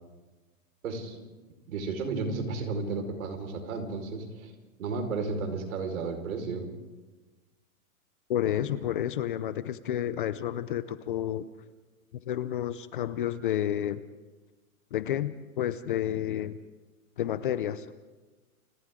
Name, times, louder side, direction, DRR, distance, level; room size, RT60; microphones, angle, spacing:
voice 1, 0.8-1.2 1.7-4.5 4.8-6.7, right 4 dB, 70° right, 5 dB, 5.0 m, -33 dB
voice 2, 8.3-11.5 12.3-14.0 14.9-16.6 17.2-17.9, left 11 dB, 35° left, 14 dB, 0.6 m, -30 dB
29.0 x 27.0 x 3.8 m, 1.3 s
hypercardioid pair, 170°, 43 cm